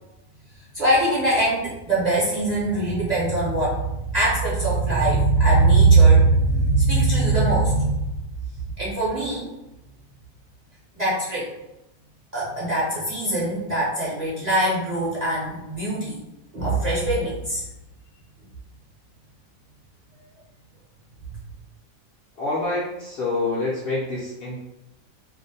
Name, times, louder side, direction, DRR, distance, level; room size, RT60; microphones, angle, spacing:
voice 1, 0.7-8.0 8.8-9.5 11.0-11.5 12.3-16.2 16.5-17.6, right 2 dB, 40° right, -8 dB, 0.6 m, -21 dB
voice 2, 22.3-24.6, left 2 dB, 60° left, -6 dB, 0.6 m, -27 dB
2.5 x 2.1 x 2.6 m, 0.93 s
omnidirectional pair, 1.4 m